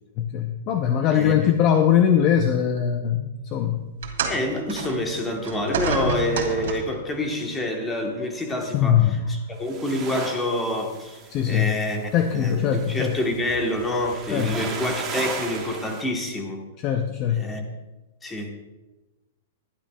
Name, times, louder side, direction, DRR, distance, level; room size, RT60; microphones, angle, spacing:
voice 1, 0.2-3.9 8.7-9.3 11.3-11.7 12.1-13.2 14.3-14.7 16.8-17.5, left 9 dB, 25° left, 6 dB, 0.5 m, -21 dB
voice 2, 1.1-1.5 4.3-9.0 9.3-11.2 11.5-16.7 17.3-17.6 18.2-18.5, left 1 dB, 10° left, 2 dB, 1.1 m, -27 dB
sound 1, 4.0-7.1 8.1-8.2 9.1-9.2, right 5 dB, 65° right, 2.3 m, -29 dB
sound 2, 9.6-16.0, right 5 dB, 15° right, 1.2 m, -36 dB
22.5 x 11.5 x 2.3 m, 1.1 s
supercardioid pair, 180°, 0 cm